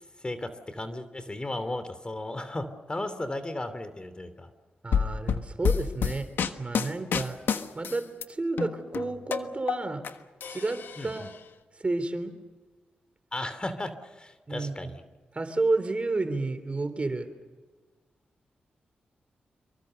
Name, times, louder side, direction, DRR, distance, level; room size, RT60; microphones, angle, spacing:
voice 1, 0.2-4.5 11.0-11.3 13.3-15.0, left 1 dB, 25° left, 11 dB, 2.9 m, -35 dB
voice 2, 4.8-6.3 6.6-7.4 7.7-10.0 10.5-11.3 11.8-12.3 14.5-14.9 15.3-17.4, right 3 dB, 35° right, 10 dB, 3.6 m, -30 dB
sound 1, 4.9-8.2 8.6-10.1 10.4-11.3, left 7 dB, 80° left, 1.3 m, -28 dB
27.0 x 23.5 x 6.7 m, 1.3 s
cardioid pair, 55°, 4 cm